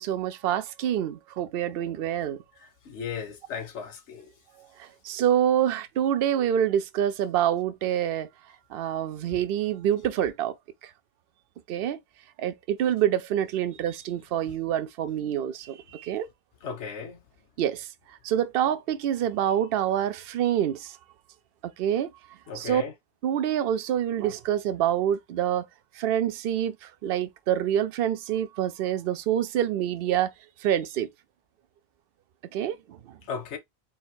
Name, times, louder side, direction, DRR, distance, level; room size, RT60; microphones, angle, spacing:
voice 1, 0.0-2.4 4.6-8.3 8.7-10.5 10.8-10.9 11.7-12.0 12.4-16.3 17.6-17.9 18.2-21.0 21.6-22.1 22.5-22.8 23.2-25.7 26.0-30.3 30.6-31.1 32.5-33.2, right 10 dB, 65° right, 0.7 m, -26 dB
voice 2, 2.9-4.3 16.6-17.2 22.5-22.9 33.3-33.6, left 6 dB, 85° left, 1.2 m, -35 dB
3.9 x 2.3 x 4.3 m
omnidirectional pair, 1.1 m